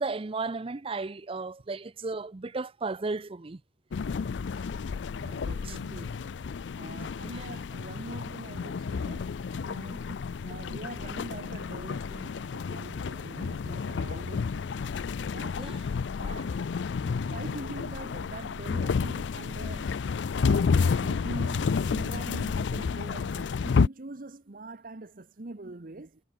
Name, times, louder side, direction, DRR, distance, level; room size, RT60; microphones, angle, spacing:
voice 1, 0.0-3.6 5.7-5.8 9.9-10.2 15.6-15.8, right 3 dB, 30° right, 0.6 m, -34 dB
sound 1, 3.9-23.9, left 5 dB, 85° left, 0.4 m, -30 dB
voice 2, 5.2-6.3 6.7-10.1 10.4-14.7 15.3-15.7 16.2-16.6 17.0-26.2, right 2 dB, 50° right, 1.0 m, -44 dB
head